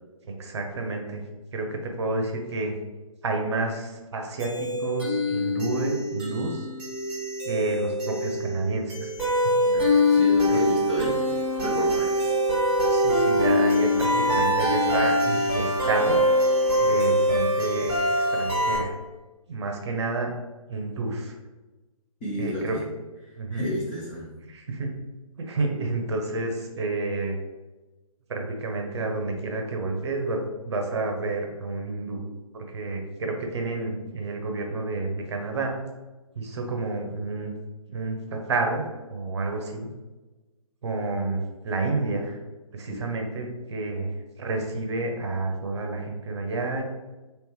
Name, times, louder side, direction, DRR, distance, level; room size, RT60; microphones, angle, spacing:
voice 1, 0.2-1.2 1.5-2.8 3.2-6.7 7.4-9.1 9.4-9.6 10.5-10.6 12.9-16.2 16.8-17.9 18.2-19.0 19.5-20.3 20.7-21.3 22.3-22.8 23.4-23.7 24.5-25.0 25.5-27.4 28.3-30.4 30.7-32.2 32.5-35.8 36.4-37.5 37.9-39.9 40.8-42.4 42.7-44.1 44.4-46.8, right 3 dB, 50° right, 2 dB, 0.7 m, -30 dB
sound 1, 4.4-18.8, left 1 dB, 5° right, 0.9 m, -23 dB
voice 2, 9.6-11.2 11.5-12.4 22.2-22.8 23.5-24.3 42.9-43.0, equal, 10° left, -7 dB, 0.3 m, -32 dB
3.1 x 2.9 x 3.1 m, 1.2 s
figure-of-eight pair, 140°, 19 cm